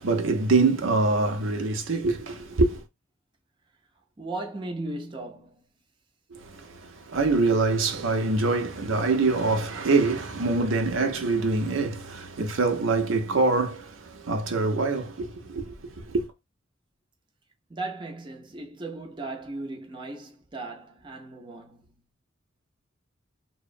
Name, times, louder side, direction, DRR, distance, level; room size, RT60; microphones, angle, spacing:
voice 1, 0.0-2.8 6.3-16.3, right 3 dB, 75° right, 0.6 m, -25 dB
voice 2, 4.2-5.6 17.7-22.0, right 2 dB, 25° right, 0.5 m, -37 dB
2.9 x 2.0 x 2.4 m
head